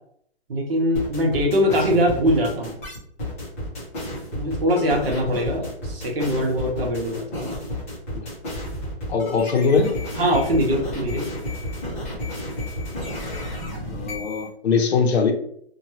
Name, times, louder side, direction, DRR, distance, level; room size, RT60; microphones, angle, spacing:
voice 1, 0.5-2.8 4.3-7.6 10.1-11.3, equal, 60° right, 1.0 m, -22 dB
sound 1, 0.9-14.5, left 1 dB, 15° left, 0.5 m, -31 dB
voice 2, 9.1-10.0 13.9-15.3, left 5 dB, 70° left, 0.7 m, -21 dB
2.9 x 2.3 x 2.8 m
hypercardioid pair, 165°, 33 cm